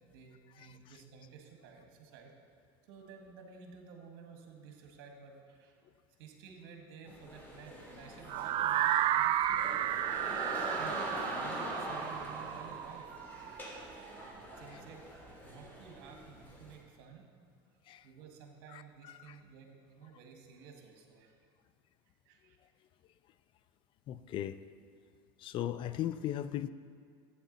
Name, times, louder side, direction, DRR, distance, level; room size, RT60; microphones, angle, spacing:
voice 1, 0.0-2.3 2.8-5.8 6.2-10.1 10.6-17.3 17.7-21.4 22.0-22.6, right 6 dB, 70° right, 2 dB, 1.7 m, -53 dB
sound 1, 7.1-16.7, equal, 15° left, 2.6 m, -43 dB
sound 2, 8.3-14.2, right 11 dB, 45° right, 0.4 m, -33 dB
voice 2, 24.1-24.6 25.4-26.7, left 11 dB, 45° left, 14 dB, 0.4 m, -37 dB
12.0 x 8.6 x 4.0 m, 2.1 s
supercardioid pair, 105°, 12 cm